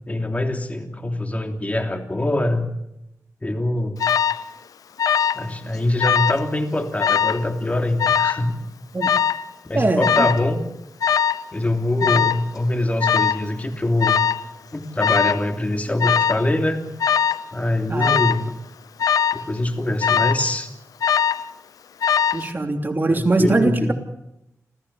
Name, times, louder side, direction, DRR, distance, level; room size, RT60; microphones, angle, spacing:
voice 1, 0.1-2.7 3.4-4.0 5.3-8.6 9.6-10.6 11.5-14.2 14.7-16.8 17.5-18.5 19.3-20.7 23.1-23.9, left 1 dB, 25° left, 5 dB, 3.1 m, -23 dB
Alarm, 4.0-4.4 5.0-5.5 5.7-6.4 7.0-7.4 8.0-8.4 9.0-9.4 10.0-10.4 11.0-11.4 12.0-12.4 13.0-13.4 14.0-14.4 15.0-15.5 16.0-16.4 17.0-17.4 18.0-18.4 19.0-19.4 20.0-20.5 21.0-21.5 22.0-22.5, left 8 dB, 90° left, 0.7 m, -20 dB
voice 2, 9.7-10.3 17.9-18.2 22.3-23.9, right 2 dB, 35° right, 4 dB, 3.2 m, -21 dB
27.5 x 15.0 x 7.1 m, 0.84 s
cardioid pair, 80°, 6 cm